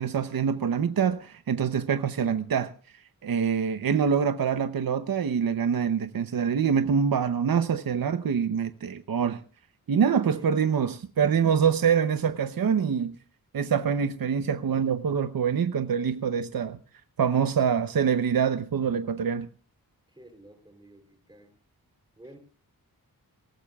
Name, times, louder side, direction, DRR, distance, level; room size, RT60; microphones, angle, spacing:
voice 1, 0.0-2.7 3.2-9.4 9.9-13.1 13.5-16.8 17.2-19.5, right 7 dB, 65° right, 0.8 m, -25 dB
voice 2, 10.2-10.6 20.1-21.6 22.2-22.4, right 1 dB, 10° right, 3.5 m, -51 dB
24.5 x 18.5 x 2.4 m
wide cardioid pair, 120°, 37 cm